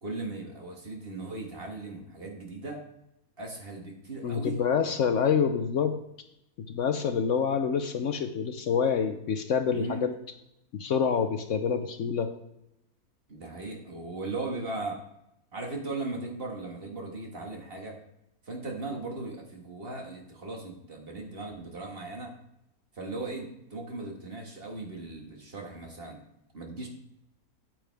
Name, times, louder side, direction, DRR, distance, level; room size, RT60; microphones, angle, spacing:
voice 1, 0.0-2.8 3.4-4.6 5.4-5.6 9.7-10.0 13.3-15.0 15.5-18.0 18.5-22.3 22.9-26.2 26.5-26.9, right 2 dB, 40° right, 1 dB, 1.6 m, -38 dB
voice 2, 4.2-6.0 6.7-10.1 10.7-12.3, left 6 dB, 65° left, 8 dB, 0.9 m, -27 dB
9.0 x 8.7 x 3.4 m, 0.84 s
omnidirectional pair, 1.5 m